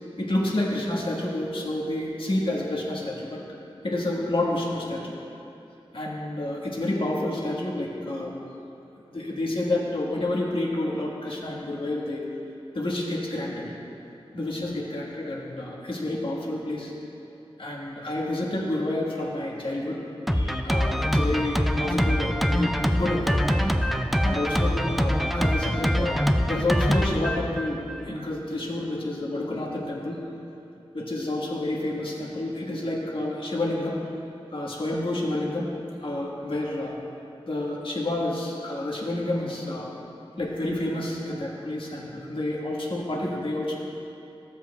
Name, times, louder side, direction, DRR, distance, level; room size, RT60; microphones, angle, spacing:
voice 1, 0.2-3.4 3.8-5.2 5.9-8.3 9.0-12.3 12.7-13.7 14.3-16.9 17.6-20.0 20.3-23.5 24.2-30.2 30.9-34.0 34.5-35.7 36.0-37.0 37.5-39.9 40.4-43.8, left 1 dB, 60° left, -3 dB, 1.5 m, -29 dB
Drum kit, 20.3-28.1, equal, ahead, 0.4 m, -24 dB
15.5 x 7.2 x 2.3 m, 2.8 s
wide cardioid pair, 95°, 10 cm